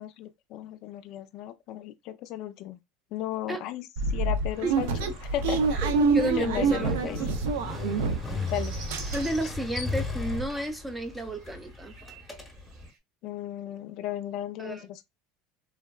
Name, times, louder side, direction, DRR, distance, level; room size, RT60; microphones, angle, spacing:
voice 1, 0.0-2.8 3.1-4.9 5.2-5.6 6.4-7.2 8.0-8.1 8.5-8.7 9.4-9.5 13.2-15.0, left 12 dB, 55° left, 0.4 m, -35 dB
sound 1, 4.0-8.4 8.7-9.6 10.0-10.1 10.2-10.5, right 4 dB, 85° right, 0.4 m, -27 dB
Motorcycle, 4.5-12.9, left 3 dB, 5° left, 0.9 m, -37 dB
voice 2, 5.8-7.3 9.1-11.9 14.6-14.9, right 1 dB, 10° right, 0.5 m, -32 dB
sound 2, 7.6-10.9 11.2-13.0, right 4 dB, 55° right, 0.8 m, -49 dB
3.4 x 2.1 x 2.2 m
supercardioid pair, 125°, 0 cm